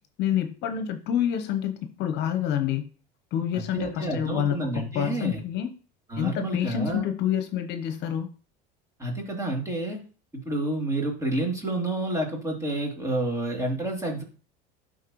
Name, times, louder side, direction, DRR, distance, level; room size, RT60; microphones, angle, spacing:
voice 1, 0.2-2.9 3.3-5.7 6.2-8.3, left 9 dB, 55° left, 7 dB, 0.9 m, -28 dB
voice 2, 3.5-5.4 6.1-7.0 9.0-10.0 10.3-14.2, right 1 dB, 15° right, 0 dB, 2.9 m, -29 dB
11.5 x 4.2 x 3.1 m, 0.37 s
supercardioid pair, 100°, 21 cm